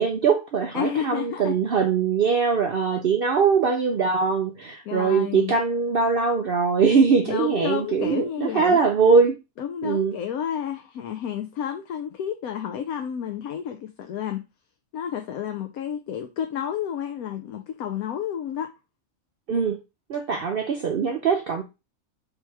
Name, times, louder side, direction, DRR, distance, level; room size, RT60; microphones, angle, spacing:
voice 1, 0.0-9.4 9.8-10.2 19.5-19.8 20.1-21.6, right 5 dB, 60° right, 0.6 m, -22 dB
voice 2, 0.7-1.6 4.9-5.5 7.3-8.8 9.6-14.4 14.9-18.7, left 9 dB, 90° left, 1.1 m, -30 dB
3.4 x 2.9 x 4.5 m
omnidirectional pair, 1.5 m